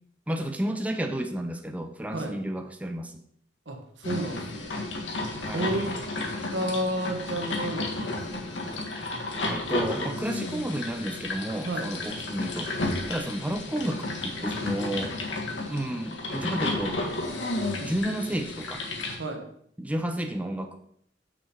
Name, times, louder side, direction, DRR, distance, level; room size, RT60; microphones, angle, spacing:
voice 1, 0.3-3.2 5.4-5.7 9.5-12.7 13.1-15.1 15.7-17.0 17.8-18.8 19.8-20.8, right 1 dB, 10° right, 5 dB, 0.6 m, -31 dB
voice 2, 3.6-4.8 5.5-6.0 6.5-8.5 11.6-11.9 19.2-19.5, right 1 dB, 85° right, 2 dB, 1.6 m, -31 dB
sound 1, 4.0-19.2, left 2 dB, 85° left, 1.7 m, -32 dB
6.8 x 6.4 x 4.5 m, 0.67 s
head